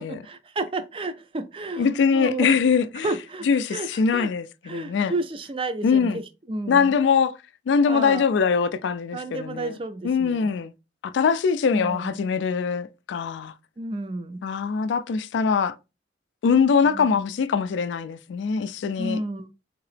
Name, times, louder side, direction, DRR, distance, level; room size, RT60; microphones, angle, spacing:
voice 1, 0.0-2.6 3.0-4.3 4.6-6.9 7.9-8.2 9.1-10.5 11.7-12.2 13.8-14.4 16.8-17.2 19.0-19.5, right 2 dB, 30° right, 0.4 m, -32 dB
voice 2, 1.8-3.1 3.5-5.1 5.8-6.2 6.7-7.3 7.7-9.7 10.0-10.7 11.0-13.5 14.4-15.7 16.4-19.2, left 6 dB, 85° left, 0.3 m, -22 dB
3.7 x 2.8 x 3.2 m
head